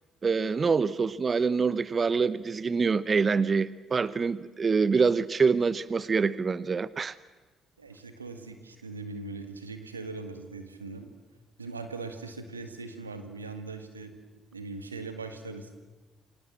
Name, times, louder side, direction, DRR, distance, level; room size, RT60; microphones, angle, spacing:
voice 1, 0.2-7.2, right 5 dB, 35° right, 18 dB, 0.8 m, -25 dB
voice 2, 7.8-11.1 11.6-14.2 14.5-15.7, right 3 dB, 90° right, 8 dB, 1.7 m, -40 dB
28.5 x 24.5 x 7.6 m, 1.2 s
figure-of-eight pair, 45°, 0 cm